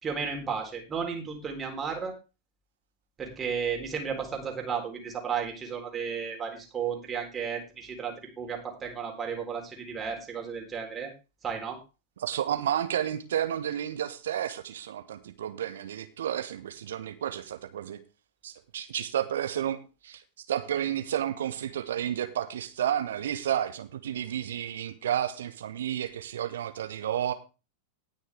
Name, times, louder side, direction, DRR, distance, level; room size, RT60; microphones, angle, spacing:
voice 1, 0.0-2.1 3.2-11.1 11.4-11.8, right 6 dB, 20° right, 1 dB, 3.8 m, -33 dB
voice 2, 12.2-18.0 18.4-19.8 20.0-20.2 20.5-27.3, right 10 dB, 60° right, 9 dB, 1.4 m, -31 dB
19.0 x 6.4 x 3.5 m, 0.30 s
figure-of-eight pair, 90°, 0 cm